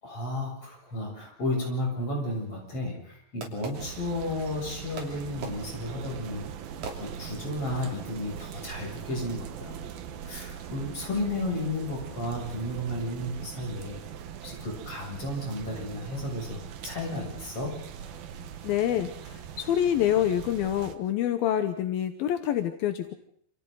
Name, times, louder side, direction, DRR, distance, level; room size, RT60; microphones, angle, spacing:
voice 1, 0.0-6.5 7.0-9.7 10.2-14.0 14.4-17.8, left 1 dB, 40° left, -1 dB, 8.7 m, -33 dB
Fireworks, 2.3-4.5 5.0-7.7, right 3 dB, 55° right, 4.4 m, -43 dB
sound 1, 3.7-21.0, right 8 dB, 80° right, 3.2 m, -41 dB
voice 2, 18.6-23.1, left 11 dB, 80° left, 8 dB, 2.9 m, -27 dB
29.0 x 28.5 x 4.0 m, 0.62 s
omnidirectional pair, 4.2 m